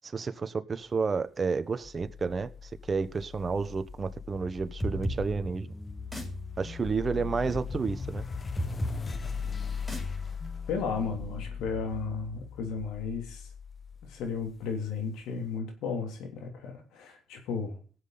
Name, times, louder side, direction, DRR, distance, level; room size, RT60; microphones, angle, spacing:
voice 1, 0.0-5.7 6.6-8.2, right 5 dB, 35° right, 1.1 m, -31 dB
sound 1, 1.8-15.0, left 6 dB, 35° left, 1.0 m, -39 dB
sound 2, 4.8-12.2, equal, 10° left, 5.3 m, -38 dB
voice 2, 10.7-13.5 14.0-17.8, left 5 dB, 90° left, 3.0 m, -34 dB
18.0 x 7.9 x 4.0 m
cardioid pair, 90°, 0 cm